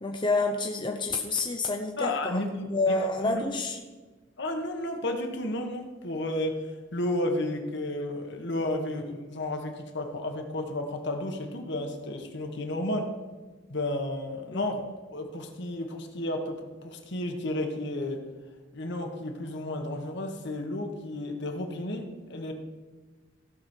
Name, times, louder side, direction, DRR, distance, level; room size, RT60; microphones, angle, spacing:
voice 1, 0.0-3.8 14.5-14.6, left 3 dB, 25° left, 3 dB, 0.6 m, -28 dB
voice 2, 2.0-2.6 3.0-3.5 4.4-6.6 6.9-13.1 13.7-14.7 15.1-18.2 18.7-22.5, left 1 dB, 60° left, 4 dB, 1.4 m, -32 dB
16.5 x 6.3 x 4.5 m, 1.3 s
head